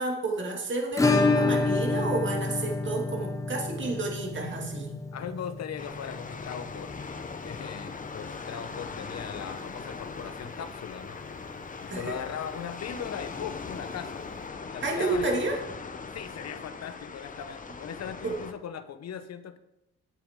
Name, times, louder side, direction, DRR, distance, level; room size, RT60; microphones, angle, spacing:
voice 1, 0.0-5.0 11.9-12.2 14.8-15.6 18.2-18.4, right 3 dB, 40° right, 1 dB, 2.6 m, -30 dB
Acoustic guitar / Strum, 1.0-9.6 9.8-9.9 10.2-10.3 10.7-10.8 12.8-12.9 14.1-14.2, left 3 dB, 10° left, 1.3 m, -29 dB
voice 2, 5.1-7.0 7.4-11.2 11.8-14.2 14.7-15.3 16.1-19.6, left 8 dB, 60° left, 10 dB, 1.0 m, -39 dB
sound 1, 5.8-18.5, left 4 dB, 25° left, 0.9 m, -40 dB
10.5 x 8.6 x 3.8 m, 0.86 s
cardioid pair, 90°, 30 cm